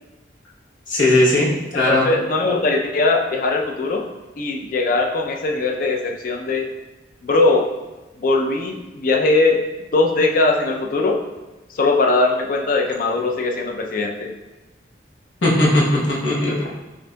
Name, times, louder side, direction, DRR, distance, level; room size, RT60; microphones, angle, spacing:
voice 1, 0.9-2.1 15.4-16.7, left 1 dB, 85° left, -6 dB, 1.0 m, -18 dB
voice 2, 1.8-4.0 4.4-6.6 7.2-7.7 8.2-9.6 9.9-11.2 11.7-14.3 16.5-16.7, left 3 dB, 45° left, 2 dB, 0.4 m, -20 dB
6.3 x 2.6 x 2.2 m, 1.1 s
head